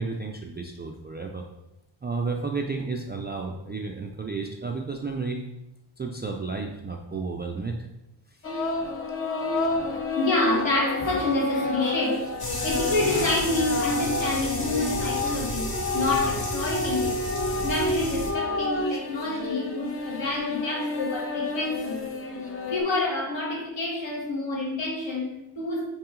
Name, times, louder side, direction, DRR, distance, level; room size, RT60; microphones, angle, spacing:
voice 1, 0.0-1.4 2.0-5.4 6.0-7.8 8.3-8.4, right 4 dB, 25° right, 1 dB, 0.3 m, -32 dB
sound 1, 8.4-22.8, left 2 dB, 25° left, 0.6 m, -29 dB
voice 2, 9.9-12.3 12.6-17.2 17.6-22.1 22.7-25.9, left 2 dB, 65° left, -3 dB, 2.1 m, -28 dB
sound 2, 12.4-18.3, left 1 dB, 45° left, 1.4 m, -33 dB
5.8 x 4.8 x 3.7 m, 0.91 s
wide cardioid pair, 160°, 50 cm